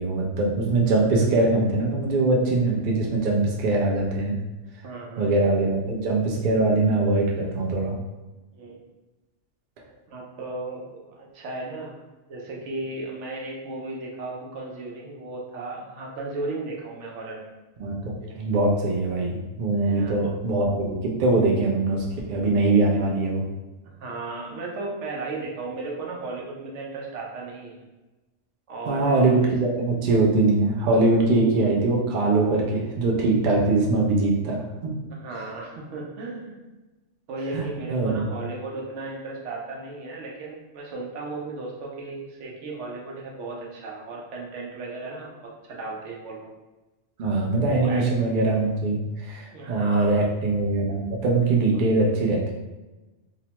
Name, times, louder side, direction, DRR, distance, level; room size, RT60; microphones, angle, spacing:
voice 1, 0.0-4.4 5.2-8.0 17.8-23.4 28.9-34.9 37.5-38.3 47.2-52.5, right 2 dB, 55° right, -2 dB, 0.6 m, -22 dB
voice 2, 4.8-5.5 8.5-8.8 10.1-12.0 12.3-17.5 19.8-20.2 24.0-27.8 28.7-29.5 35.1-36.6 37.3-46.5 47.7-48.1 49.5-50.2 51.7-51.8, right 3 dB, 80° right, -2 dB, 1.0 m, -35 dB
2.8 x 2.1 x 2.8 m, 1.1 s
omnidirectional pair, 1.2 m